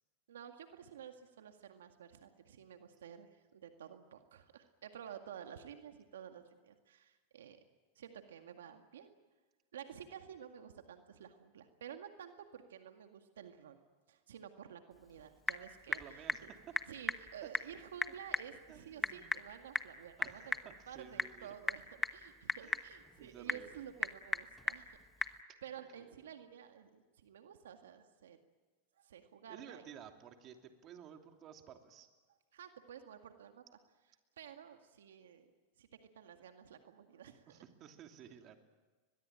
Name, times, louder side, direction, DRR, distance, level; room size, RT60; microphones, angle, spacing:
voice 1, 0.3-7.6 8.0-9.1 9.7-13.8 14.1-16.5 16.9-28.4 29.0-29.8 32.5-33.6 34.4-35.5 35.8-37.6, right 8 dB, 85° right, 6 dB, 1.9 m, -52 dB
Typing / Telephone, 14.9-25.4, left 3 dB, 10° left, 1.2 m, -40 dB
voice 2, 15.9-16.5 18.7-19.4 20.2-21.5 22.6-22.9 23.2-23.8 26.0-26.1 29.5-32.1 37.5-38.6, right 8 dB, 40° right, 5 dB, 2.9 m, -54 dB
22.5 x 22.0 x 9.0 m, 1.3 s
hypercardioid pair, 120°, 0 cm